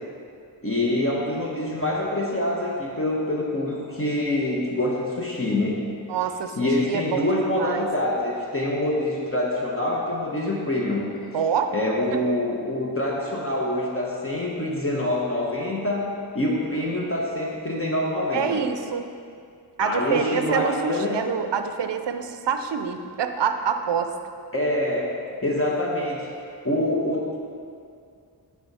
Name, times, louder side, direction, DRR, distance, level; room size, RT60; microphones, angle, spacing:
voice 1, 0.6-5.7 6.6-11.0 11.7-16.0 16.3-18.6 19.8-21.3 24.5-25.1 25.4-26.3 26.6-27.4, left 1 dB, 30° left, -4 dB, 1.0 m, -25 dB
voice 2, 6.1-7.9 11.3-11.7 12.1-12.3 18.3-19.1 19.8-24.1, right 7 dB, 80° right, 7 dB, 0.6 m, -26 dB
10.5 x 3.6 x 4.2 m, 2.3 s
wide cardioid pair, 60°, 41 cm